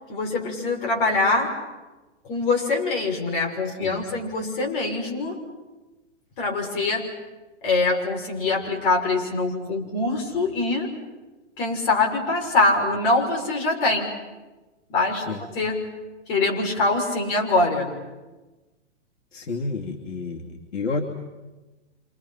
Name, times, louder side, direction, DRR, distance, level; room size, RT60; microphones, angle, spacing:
voice 1, 0.1-1.5 2.2-5.4 6.4-7.1 7.6-10.9 11.6-14.1 14.9-15.9 16.3-17.9, left 3 dB, 45° left, 1 dB, 6.3 m, -24 dB
voice 2, 3.7-4.0 15.3-15.4 19.3-21.0, left 3 dB, 80° left, 0 dB, 2.8 m, -30 dB
29.5 x 27.5 x 5.9 m, 1.2 s
hypercardioid pair, 150°, 36 cm